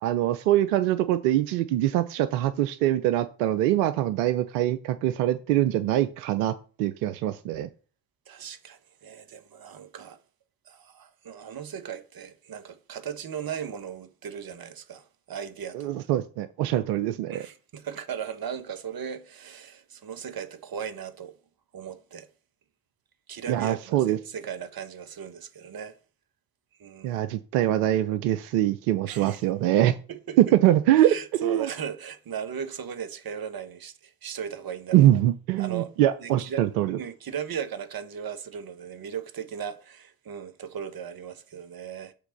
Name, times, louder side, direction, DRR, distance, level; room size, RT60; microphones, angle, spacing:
voice 1, 0.0-7.7 15.7-17.5 23.5-24.2 27.0-30.0 30.6-31.1 31.4-31.7 34.9-37.0, right 13 dB, 85° right, 0.6 m, -24 dB
voice 2, 8.3-10.2 10.6-15.9 17.3-21.3 21.7-22.3 23.3-25.9 26.8-27.2 29.1-29.4 30.1-30.5 31.0-35.2 35.6-35.9 36.2-36.6 37.0-42.1, right 8 dB, 50° right, 1.2 m, -37 dB
8.1 x 3.4 x 6.4 m
hypercardioid pair, 40°, 47 cm